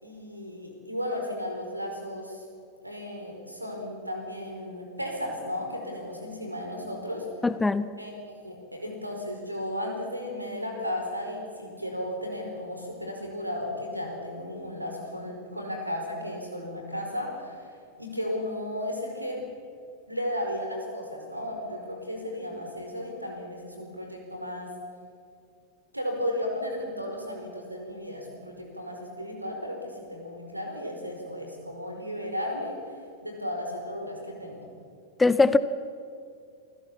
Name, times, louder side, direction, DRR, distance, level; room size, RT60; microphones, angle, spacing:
voice 1, 0.0-2.4 2.8-7.5 8.0-17.7 18.0-19.4 20.1-24.7 25.9-32.7 33.2-34.6, left 1 dB, 85° right, 2 dB, 4.6 m, -34 dB
voice 2, 7.4-7.9 35.2-35.6, left 3 dB, 10° left, 15 dB, 0.7 m, -21 dB
27.5 x 15.5 x 7.2 m, 2.4 s
figure-of-eight pair, 90°, 0 cm